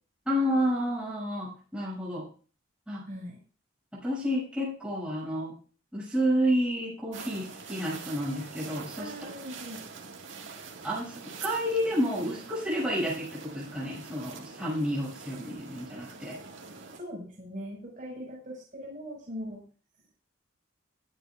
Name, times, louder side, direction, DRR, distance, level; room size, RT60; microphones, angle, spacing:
voice 1, 0.3-2.2 2.9-3.0 3.9-5.5 5.9-9.1 10.8-16.4, equal, 5° right, -7 dB, 7.2 m, -30 dB
voice 2, 3.1-3.4 9.0-9.8 17.0-19.6, equal, 45° right, -2 dB, 5.6 m, -40 dB
sound 1, 7.1-17.0, right 5 dB, 85° right, 2.0 m, -45 dB
22.0 x 9.9 x 2.5 m, 0.39 s
head